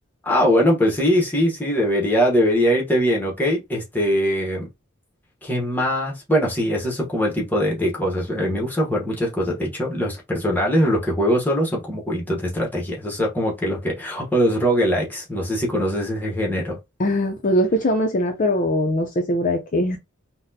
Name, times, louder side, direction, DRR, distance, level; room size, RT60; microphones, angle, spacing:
voice 1, 0.2-4.7 5.4-16.8, equal, 10° left, 1.0 m, -22 dB
voice 2, 17.0-20.0, left 1 dB, 40° left, 0.5 m, -21 dB
4.1 x 2.1 x 2.7 m
head